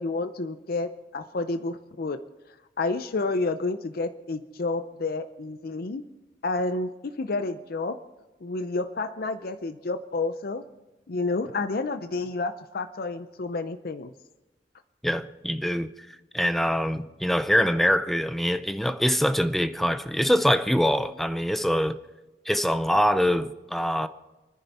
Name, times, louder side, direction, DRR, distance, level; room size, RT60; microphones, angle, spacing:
voice 1, 0.0-2.3 2.8-6.0 6.4-8.0 8.4-10.6 11.1-14.1, left 3 dB, 55° left, 0.6 m, -30 dB
voice 2, 15.0-15.9 16.3-22.0 22.5-24.1, equal, ahead, 0.5 m, -24 dB
27.5 x 10.0 x 4.2 m
head